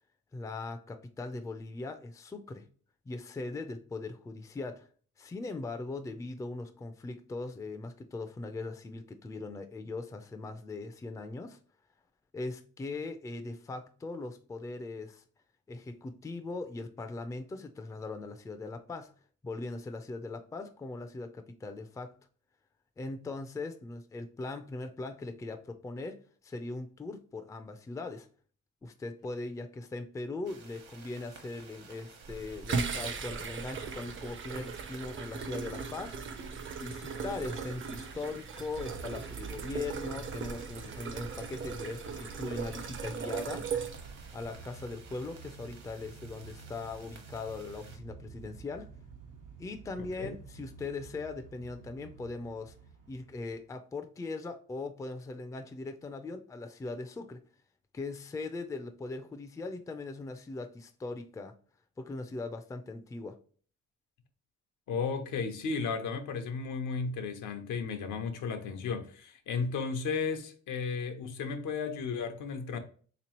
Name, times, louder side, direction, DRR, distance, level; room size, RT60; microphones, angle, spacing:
voice 1, 0.3-2.7 3.1-4.9 5.2-11.6 12.3-15.2 15.7-19.1 19.4-22.1 23.0-28.3 28.8-36.2 36.8-43.7 44.3-48.9 49.6-52.7 53.1-57.4 57.9-61.5 62.0-63.4, left 3 dB, 10° left, 0.4 m, -40 dB
sound 1, 30.4-48.0, right 5 dB, 60° right, 1.0 m, -54 dB
sound 2, 32.2-44.6, right 5 dB, 40° right, 0.5 m, -38 dB
Motor vehicle (road) / Engine starting / Accelerating revving vroom, 38.8-53.7, right 6 dB, 85° right, 0.8 m, -50 dB
voice 2, 50.0-50.3 64.9-72.8, left 5 dB, 80° left, 0.7 m, -34 dB
3.4 x 3.0 x 2.9 m
cardioid pair, 90°, 30 cm